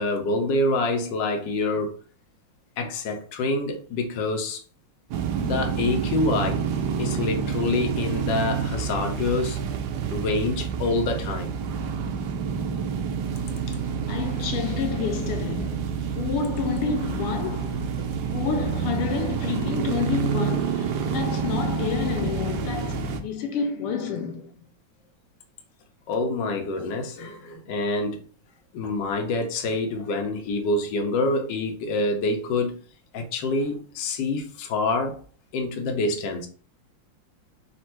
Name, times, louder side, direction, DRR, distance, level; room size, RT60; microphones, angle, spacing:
voice 1, 0.0-1.9 2.8-4.6 5.4-6.6 7.0-9.6 10.1-11.5 26.1-28.2 28.7-32.8 33.1-35.2 35.5-36.5, left 2 dB, 65° left, 1.4 m, -26 dB
sound 1, 5.1-23.2, right 6 dB, 75° right, 0.9 m, -28 dB
voice 2, 14.1-17.9 18.3-24.5, left 6 dB, 90° left, 1.6 m, -29 dB
4.3 x 2.5 x 4.4 m
omnidirectional pair, 2.4 m